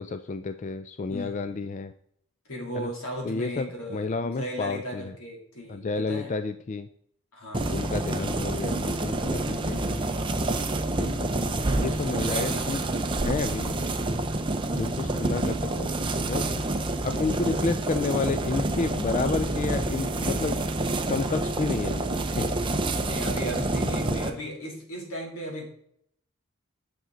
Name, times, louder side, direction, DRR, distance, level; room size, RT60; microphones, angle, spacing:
voice 1, 0.0-1.9 2.7-2.9 3.2-5.0 5.7-6.9 7.7-10.0 11.0-11.1 11.8-12.8 13.2-13.8 14.7-15.9 16.3-16.6 17.0-20.6 21.1-23.0, left 4 dB, 35° left, 10 dB, 0.3 m, -30 dB
voice 2, 1.1-1.6 2.5-6.3 7.3-7.8 9.6-10.3 11.0-11.4 12.3-12.8 15.2-15.3 23.0-25.7, equal, 75° left, -1 dB, 2.9 m, -37 dB
sound 1, 7.5-24.3, right 2 dB, 20° right, 0.6 m, -28 dB
9.3 x 6.2 x 3.8 m, 0.68 s
head